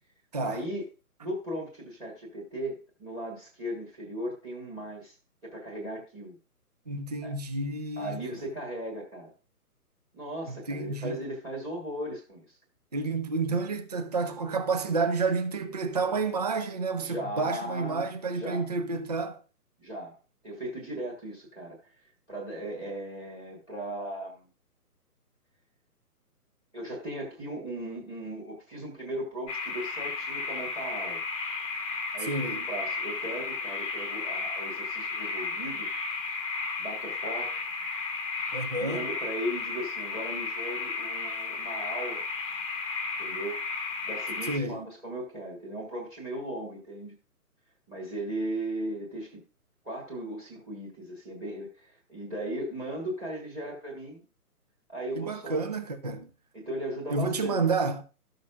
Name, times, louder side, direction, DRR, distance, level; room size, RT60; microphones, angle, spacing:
voice 1, 0.4-0.8 1.2-5.2 5.4-6.4 7.2-7.3 8.0-9.3 10.1-12.6 17.0-18.7 19.8-20.2 20.4-24.5 26.7-31.2 32.1-35.9 36.8-37.6 38.8-42.2 43.2-43.6 44.0-47.2 47.9-49.4 49.8-54.3 54.9-55.6 56.5-57.6, right 1 dB, 10° right, 1.4 m, -37 dB
voice 2, 6.9-8.2 10.7-11.2 12.9-19.4 32.2-32.6 38.5-39.1 44.4-44.8 55.2-56.3 57.1-58.0, right 3 dB, 25° right, 0.5 m, -30 dB
sound 1, 29.5-44.6, left 4 dB, 20° left, 0.9 m, -34 dB
13.0 x 6.4 x 2.4 m
hypercardioid pair, 150°, 47 cm